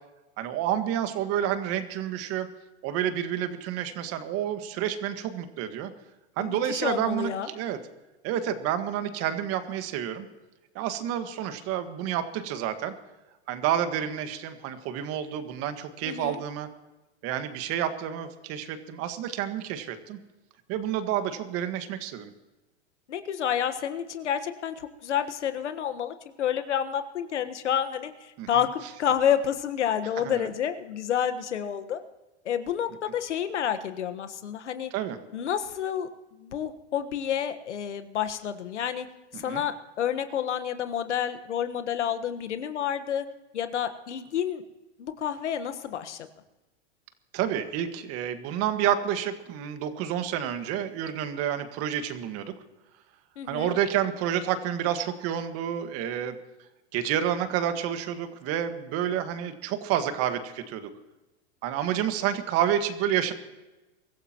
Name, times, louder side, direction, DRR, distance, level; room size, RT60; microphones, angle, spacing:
voice 1, 0.4-2.5 2.8-5.9 6.4-7.8 8.2-10.3 10.7-12.9 13.5-16.7 17.2-20.2 20.7-22.3 28.4-28.6 30.2-30.5 34.9-35.2 39.3-39.6 47.3-52.5 53.5-56.3 56.9-60.9 61.6-63.3, right 10 dB, 45° right, 9 dB, 1.7 m, -29 dB
voice 2, 6.4-7.5 16.0-16.4 23.1-32.0 32.4-34.9 35.3-39.1 39.3-43.3 43.5-44.6 45.0-46.3 53.4-53.7, left 9 dB, 90° left, 10 dB, 1.4 m, -29 dB
23.5 x 14.5 x 3.0 m, 1.1 s
hypercardioid pair, 120°, 34 cm